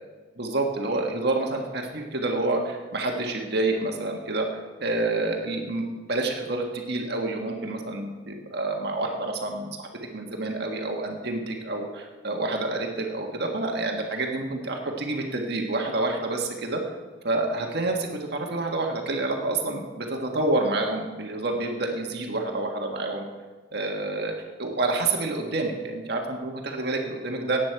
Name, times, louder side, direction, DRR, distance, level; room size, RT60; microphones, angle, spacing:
voice 1, 0.4-9.9 10.1-16.8 17.2-23.3 23.7-27.6, right 2 dB, 60° right, 2 dB, 1.6 m, -28 dB
16.0 x 9.4 x 4.6 m, 1.4 s
head